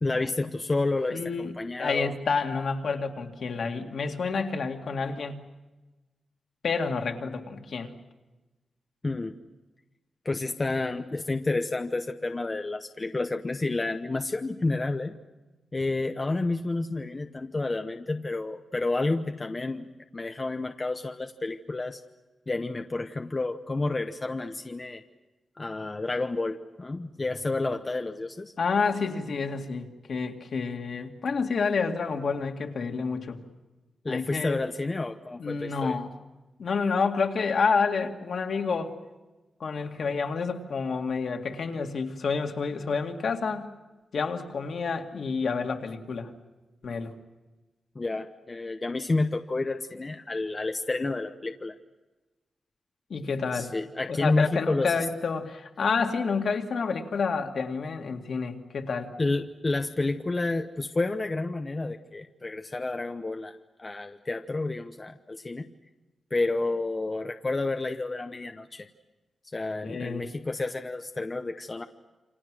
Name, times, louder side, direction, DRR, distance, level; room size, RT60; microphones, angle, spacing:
voice 1, 0.0-2.1 9.0-9.3 10.2-15.2 15.7-19.9 20.1-22.0 22.5-25.0 25.6-28.5 34.0-36.0 47.9-51.7 53.5-54.9 59.2-65.7 66.3-68.9 69.5-71.8, left 2 dB, 25° left, 6 dB, 0.9 m, -30 dB
voice 2, 1.1-1.5 1.8-5.4 6.6-7.9 28.6-33.4 34.1-34.6 35.4-36.1 36.6-38.9 39.6-43.7 44.1-46.3 46.8-47.1 53.1-53.7 54.1-59.1 69.8-70.2, left 5 dB, 60° left, 3 dB, 2.2 m, -29 dB
28.5 x 26.5 x 6.2 m, 1.1 s
wide cardioid pair, 155°, 0 cm